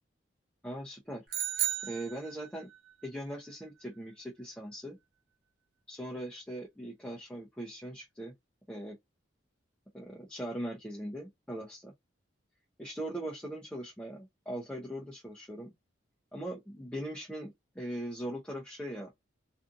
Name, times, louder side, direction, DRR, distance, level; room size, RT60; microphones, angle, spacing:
voice 1, 0.6-1.3 1.8-2.7 3.0-5.0 5.9-8.3 8.7-9.0 9.9-11.9 12.8-15.7 16.3-19.1, right 1 dB, 5° left, 0.6 m, -40 dB
sound 1, 1.3-2.8, right 11 dB, 45° right, 0.8 m, -34 dB
2.6 x 2.5 x 2.5 m
head